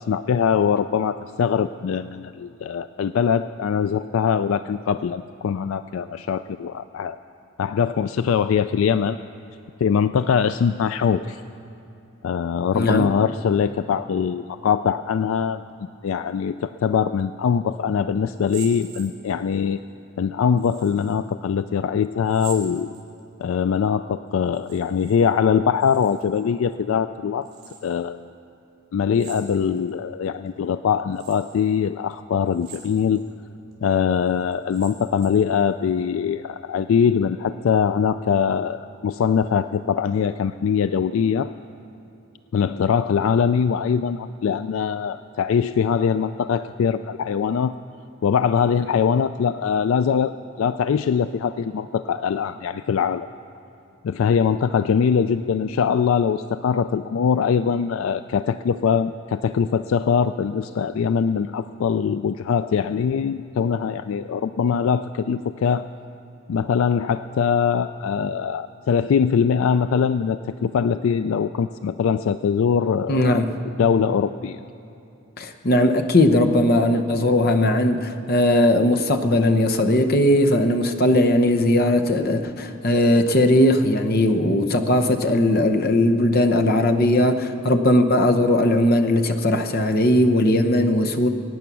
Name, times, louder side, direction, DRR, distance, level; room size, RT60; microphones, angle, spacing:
voice 1, 0.0-7.2 7.6-9.2 9.8-11.4 12.2-15.6 16.0-19.8 20.2-22.9 23.4-27.5 27.8-28.2 28.9-33.2 33.8-41.5 42.5-47.7 48.2-53.3 54.0-65.9 66.5-73.4 73.8-74.6, left 7 dB, 70° left, 12 dB, 0.3 m, -22 dB
voice 2, 12.7-13.1 73.1-73.5 75.4-91.3, left 1 dB, 45° left, 6 dB, 0.9 m, -19 dB
sound 1, 18.3-19.6 20.6-21.2 22.2-23.4 24.4-25.2 25.4-26.4 27.4-28.0 29.1-29.9 30.5-30.6 31.1-31.6 32.5-33.2 33.7-33.8 34.5-35.5, right 7 dB, 60° right, 4.3 m, -43 dB
22.0 x 9.5 x 6.1 m, 2.8 s
head